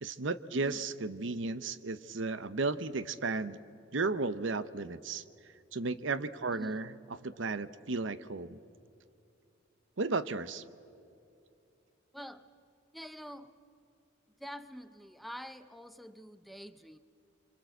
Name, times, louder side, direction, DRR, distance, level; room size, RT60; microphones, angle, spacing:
voice 1, 0.0-3.6 3.9-5.2 5.7-6.9 7.2-8.6 10.0-10.6, right 3 dB, 70° right, 14 dB, 0.8 m, -34 dB
voice 2, 0.5-0.9 6.5-6.8 12.1-12.5 12.9-13.6 14.4-17.0, equal, ahead, 10 dB, 0.5 m, -46 dB
26.5 x 25.0 x 7.9 m, 2.6 s
head